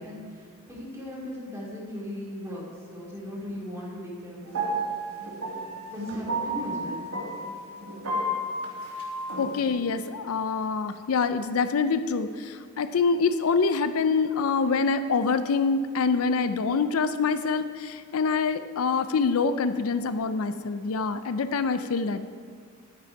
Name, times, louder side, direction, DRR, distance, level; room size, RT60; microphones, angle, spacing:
voice 1, 0.0-4.8 5.9-7.0, left 1 dB, 15° right, -5 dB, 2.6 m, -37 dB
sound 1, 4.5-9.7, right 1 dB, 70° right, 2.2 m, -32 dB
voice 2, 9.4-22.3, left 4 dB, 75° left, 11 dB, 0.5 m, -25 dB
10.5 x 9.4 x 4.7 m, 2.1 s
head